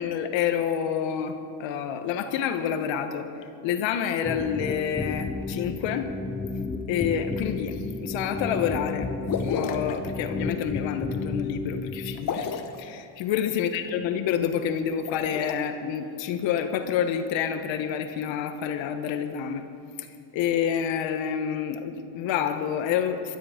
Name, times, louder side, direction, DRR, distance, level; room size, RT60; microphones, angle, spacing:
voice 1, 0.0-3.3 3.6-6.1 6.9-9.1 9.4-19.6 20.0-20.1 20.3-23.4, left 8 dB, 65° left, 7 dB, 1.4 m, -28 dB
sound 1, 4.2-12.2, left 3 dB, 10° left, 0.7 m, -32 dB
sound 2, 9.3-10.0 12.2-12.8 14.9-15.5, left 7 dB, 40° left, 1.4 m, -30 dB
20.5 x 13.0 x 5.1 m, 2.5 s
cardioid pair, 120°, 48 cm